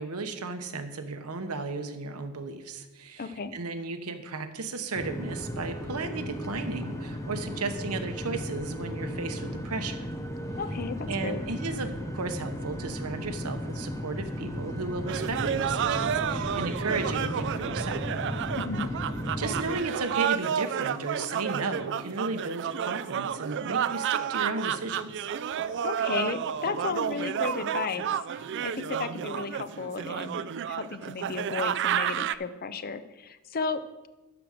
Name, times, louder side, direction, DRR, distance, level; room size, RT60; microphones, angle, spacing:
voice 1, 0.0-10.1 11.1-18.0 19.4-25.3, right 3 dB, 80° right, 8 dB, 1.0 m, -34 dB
voice 2, 3.2-3.5 10.6-11.4 18.6-18.9 25.8-30.4 30.7-34.1, left 4 dB, 40° left, 12 dB, 0.6 m, -34 dB
sound 1, 4.9-19.7, equal, 15° left, 0.8 m, -35 dB
sound 2, 15.1-32.4, right 8 dB, 55° right, 0.3 m, -31 dB
12.0 x 4.9 x 6.5 m, 1.1 s
head